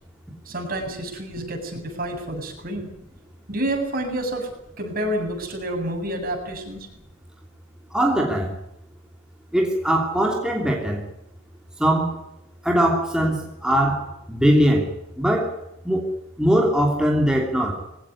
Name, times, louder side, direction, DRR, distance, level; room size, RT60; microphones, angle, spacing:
voice 1, 0.4-2.9 3.5-4.5 4.8-6.9, right 1 dB, 45° right, 3 dB, 7.9 m, -29 dB
voice 2, 7.9-8.5 9.5-11.0 11.8-12.2 12.6-15.6 15.8-17.8, equal, 5° right, 0 dB, 3.1 m, -21 dB
22.5 x 17.5 x 9.8 m, 0.87 s
head